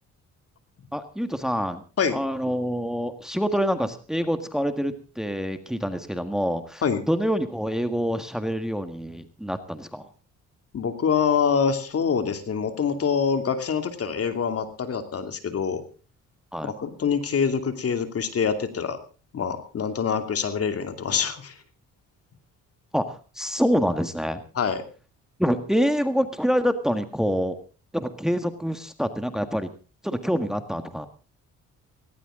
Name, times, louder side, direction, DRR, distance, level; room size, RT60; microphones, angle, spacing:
voice 1, 0.9-1.8 2.1-6.8 7.1-10.0 16.5-16.7 22.9-24.4 25.4-27.6 27.9-29.7 30.0-31.1, equal, ahead, 8 dB, 1.7 m, -26 dB
voice 2, 10.7-15.8 16.6-19.0 19.3-21.5 24.5-24.8, left 6 dB, 50° left, 7 dB, 2.7 m, -25 dB
18.0 x 17.5 x 3.8 m, 0.35 s
cardioid pair, 90°, 30 cm